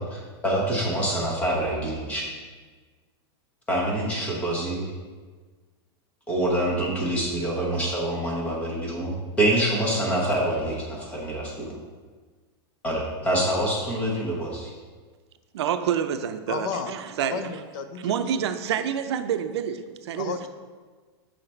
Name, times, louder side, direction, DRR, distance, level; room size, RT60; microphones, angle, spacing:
voice 1, 0.0-2.3 3.7-4.9 6.3-11.8 12.8-14.7, right 1 dB, 10° left, -3 dB, 1.0 m, -26 dB
voice 2, 15.5-17.4 18.0-20.3, right 8 dB, 85° right, 9 dB, 0.5 m, -27 dB
voice 3, 16.5-17.0 17.2-18.5 20.1-20.5, left 6 dB, 45° left, 8 dB, 0.4 m, -33 dB
6.7 x 4.0 x 4.4 m, 1.4 s
supercardioid pair, 175°, 14 cm